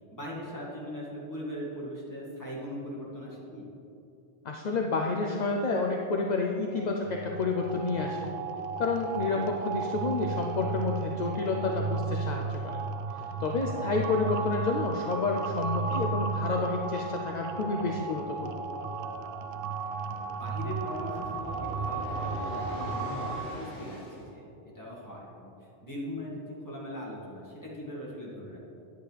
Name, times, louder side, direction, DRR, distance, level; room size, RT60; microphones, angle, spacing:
voice 1, 0.1-3.7 9.2-9.5 15.7-16.0 19.6-19.7 20.1-24.0 24.3-25.5 25.8-28.6, equal, 15° left, -6 dB, 2.1 m, -40 dB
voice 2, 4.4-8.2 8.8-12.8 13.2-18.6, left 3 dB, 50° left, 1 dB, 0.6 m, -30 dB
sound 1, 6.8-23.4, right 4 dB, 60° right, 0.7 m, -34 dB
sound 2, 18.8-24.2, equal, 70° left, 2.2 m, -41 dB
10.5 x 9.1 x 3.3 m, 2.9 s
omnidirectional pair, 1.2 m